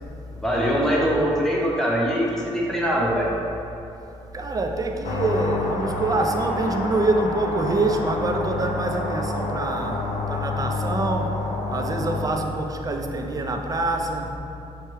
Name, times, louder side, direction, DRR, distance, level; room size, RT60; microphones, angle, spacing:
voice 1, 0.3-3.3, equal, 5° left, -4 dB, 0.9 m, -22 dB
voice 2, 4.3-11.4 11.7-14.4, right 2 dB, 30° right, 2 dB, 0.4 m, -25 dB
sound 1, 5.0-12.2, left 2 dB, 75° left, 0.4 m, -28 dB
5.7 x 2.2 x 3.1 m, 2.8 s
cardioid pair, 70°, 13 cm